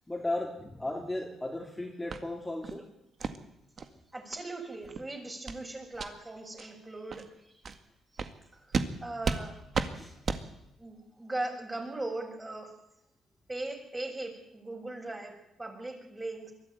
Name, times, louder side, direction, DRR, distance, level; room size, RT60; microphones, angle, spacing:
voice 1, 0.1-2.9 9.9-10.1, left 1 dB, 10° left, 0 dB, 3.2 m, -35 dB
sound 1, 2.1-2.2 2.6-2.8 3.2-3.4 3.8-3.9 4.3-4.4 4.8-5.0 5.5-5.6 5.9-6.1 6.6-6.7 7.1-7.2 7.6-7.8 8.2-8.3 8.7-8.9 9.2-9.4 9.7-9.9 10.2-10.4, right 5 dB, 45° right, 1.9 m, -32 dB
voice 2, 4.1-7.8 8.1-8.2 8.5-9.6 10.8-12.7 13.5-16.5, right 2 dB, 20° right, 2 dB, 7.0 m, -39 dB
22.5 x 14.5 x 9.4 m, 0.84 s
cardioid pair, 90°, 0 cm